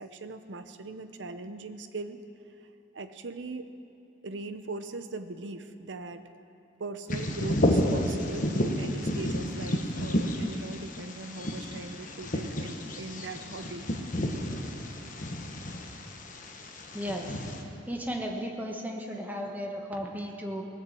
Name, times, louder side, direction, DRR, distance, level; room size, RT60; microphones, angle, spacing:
voice 1, 0.0-2.2 2.9-3.7 4.2-6.2 6.8-13.9, right 3 dB, 75° right, 9 dB, 0.7 m, -40 dB
Bird vocalization bird call bird song, 7.1-17.6, left 1 dB, 45° left, 1.2 m, -31 dB
voice 2, 16.9-17.3 17.9-20.6, equal, 10° right, 1 dB, 1.3 m, -35 dB
19.5 x 6.7 x 7.7 m, 2.8 s
head